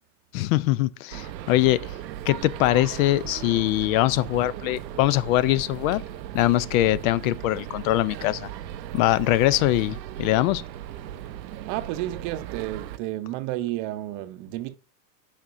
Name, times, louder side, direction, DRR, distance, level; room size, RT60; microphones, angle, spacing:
voice 1, 0.3-1.9 2.3-6.0 6.3-8.5 8.9-10.6, left 16 dB, 55° left, 0.5 m, -22 dB
sound 1, 1.1-13.0, right 11 dB, 85° right, 0.6 m, -37 dB
voice 2, 11.7-14.7, right 15 dB, 50° right, 0.7 m, -31 dB
9.4 x 5.7 x 2.5 m
hypercardioid pair, 95°, 50 cm